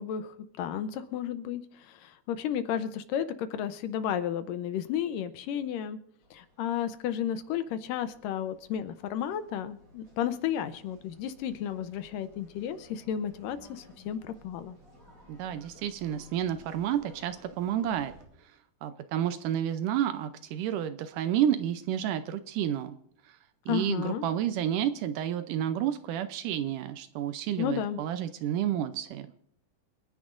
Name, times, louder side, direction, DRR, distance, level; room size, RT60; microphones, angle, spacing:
voice 1, 0.0-6.0 6.3-14.8 23.7-24.3 27.6-28.0, left 9 dB, 75° left, 11 dB, 2.2 m, -33 dB
sound 1, 6.2-18.3, equal, 30° right, 5.2 m, -57 dB
voice 2, 15.3-18.1 18.4-18.6 18.8-23.0 23.3-23.4 23.7-29.3, right 10 dB, 75° right, 10 dB, 2.0 m, -30 dB
28.0 x 9.8 x 2.5 m, 0.72 s
omnidirectional pair, 4.3 m